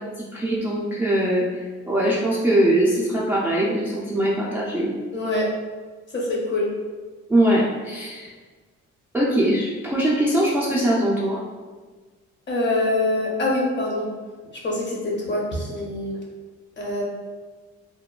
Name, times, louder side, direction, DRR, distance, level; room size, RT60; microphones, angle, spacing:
voice 1, 0.2-5.0 7.3-8.3 9.1-11.4, right 1 dB, 5° right, -7 dB, 0.4 m, -22 dB
voice 2, 5.1-5.5 6.1-6.7 12.5-14.1 14.6-16.1 16.8-17.0, left 2 dB, 35° left, -3 dB, 0.8 m, -24 dB
2.9 x 2.1 x 2.3 m, 1.4 s
cardioid pair, 90°, 30 cm